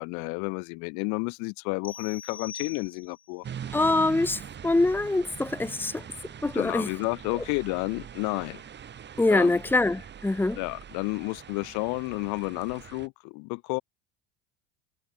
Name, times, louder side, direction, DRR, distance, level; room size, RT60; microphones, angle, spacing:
voice 1, 0.0-3.4 6.5-8.6 9.3-9.6 10.6-13.8, left 32 dB, 65° left, 2.0 m, -31 dB
sound 1, 1.8-3.4, left 7 dB, 25° left, 2.9 m, -43 dB
sound 2, 3.4-13.1, right 8 dB, 35° right, 5.6 m, -43 dB
voice 2, 3.7-6.0 6.4-6.9 9.2-10.6, left 2 dB, 5° left, 1.3 m, -24 dB
hypercardioid pair, 95°, 32 cm